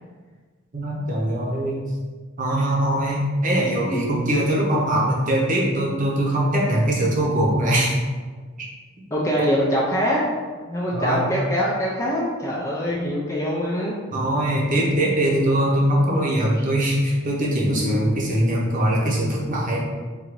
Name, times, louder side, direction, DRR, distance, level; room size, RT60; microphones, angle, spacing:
voice 1, 0.7-1.8 2.4-8.0 10.9-11.3 14.1-19.8, right 1 dB, 40° right, -3 dB, 0.9 m, -21 dB
voice 2, 9.1-10.2 10.6-13.9 16.5-16.6 17.7-18.0, equal, 15° left, -5 dB, 0.4 m, -24 dB
3.8 x 2.6 x 4.6 m, 1.5 s
head